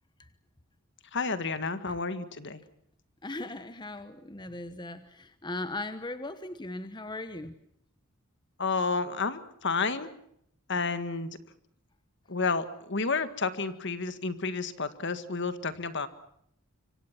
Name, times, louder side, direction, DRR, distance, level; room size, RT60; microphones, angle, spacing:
voice 1, 1.1-2.6 8.6-10.1 10.7-11.3 12.3-16.1, left 4 dB, 55° left, 11 dB, 1.7 m, -31 dB
voice 2, 3.2-7.5, left 2 dB, 20° left, 11 dB, 1.1 m, -38 dB
26.0 x 25.5 x 6.0 m, 0.73 s
head